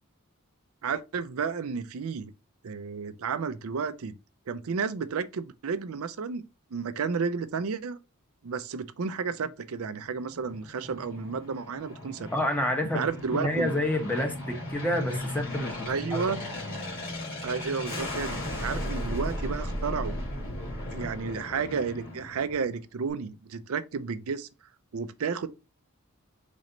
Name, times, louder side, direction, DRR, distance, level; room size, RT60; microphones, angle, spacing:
voice 1, 0.8-2.3 2.6-4.2 4.5-6.4 6.7-8.0 8.4-12.3 12.9-13.7 15.9-16.4 17.4-20.2 20.9-24.5 24.9-25.5, right 5 dB, 70° right, 0.5 m, -32 dB
Aircraft, 10.1-22.8, left 1 dB, 40° left, 2.8 m, -36 dB
voice 2, 12.3-13.1 13.3-16.2, left 1 dB, 5° left, 0.9 m, -28 dB
4.1 x 3.1 x 3.8 m
head